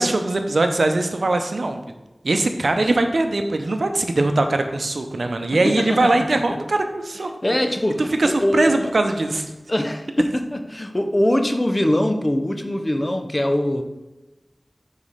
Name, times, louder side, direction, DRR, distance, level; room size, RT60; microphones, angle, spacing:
voice 1, 0.0-1.8 2.2-7.3 8.0-9.5, right 2 dB, 85° right, 6 dB, 0.6 m, -21 dB
voice 2, 5.5-6.6 7.4-8.9 9.7-13.8, left 1 dB, 30° left, 6 dB, 0.6 m, -22 dB
5.1 x 4.1 x 5.5 m, 1.0 s
wide cardioid pair, 65°, 0 cm